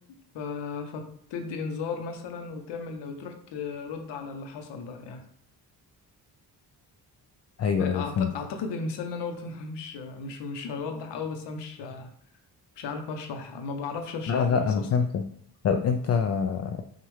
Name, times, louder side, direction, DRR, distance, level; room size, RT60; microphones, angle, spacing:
voice 1, 0.3-5.2 7.8-12.1 12.8-14.9, left 4 dB, 90° left, 5 dB, 0.8 m, -35 dB
voice 2, 7.6-8.3 14.3-15.3 15.6-16.8, left 6 dB, 40° left, 5 dB, 0.4 m, -25 dB
6.1 x 2.4 x 3.2 m, 0.67 s
cardioid pair, 80°, 41 cm